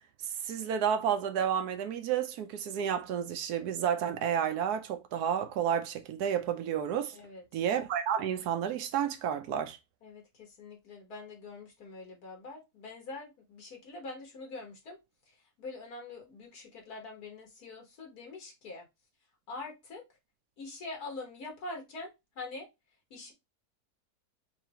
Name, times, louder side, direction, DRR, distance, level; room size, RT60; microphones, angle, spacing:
voice 1, 0.2-7.2 7.5-9.8, right 8 dB, 85° right, 1.2 m, -31 dB
voice 2, 7.1-7.4 10.0-15.0 15.3-18.9 19.5-20.0 20.6-22.7 23.1-23.3, left 3 dB, 75° left, 1.8 m, -44 dB
5.8 x 2.7 x 2.9 m
omnidirectional pair, 1.7 m